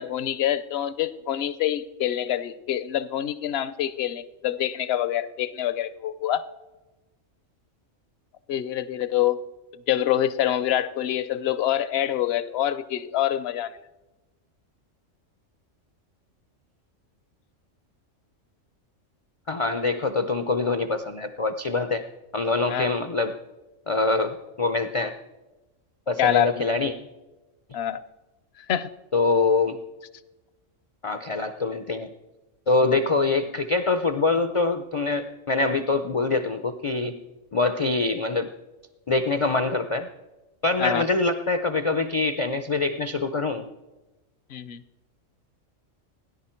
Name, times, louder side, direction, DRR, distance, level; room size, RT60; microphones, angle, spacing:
voice 1, 0.0-6.4 8.5-9.4 9.9-13.7 22.7-22.9 26.2-26.7 27.7-28.0 28.7-28.9 40.8-41.1 44.5-44.8, left 11 dB, 65° left, 16 dB, 0.8 m, -26 dB
voice 2, 19.5-22.0 22.3-23.4 23.9-25.1 26.1-27.0 29.1-29.8 31.0-32.1 32.7-37.1 37.5-38.5 39.1-40.1 40.6-43.7, left 3 dB, 45° left, 9 dB, 0.4 m, -24 dB
17.0 x 10.0 x 4.4 m, 1.1 s
omnidirectional pair, 1.3 m